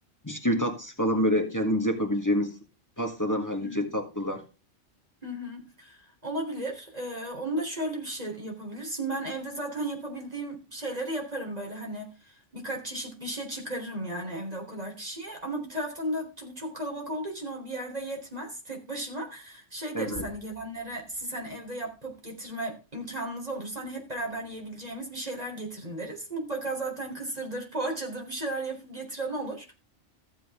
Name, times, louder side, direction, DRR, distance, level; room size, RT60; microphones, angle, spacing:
voice 1, 0.2-2.6 3.0-4.4 19.9-20.3, equal, 15° left, 4 dB, 1.8 m, -27 dB
voice 2, 3.6-3.9 5.2-29.7, right 1 dB, 30° right, 1 dB, 3.9 m, -35 dB
sound 1, 20.0-25.2, right 2 dB, 75° right, 6.3 m, -51 dB
15.0 x 7.7 x 3.6 m, 0.29 s
omnidirectional pair, 1.2 m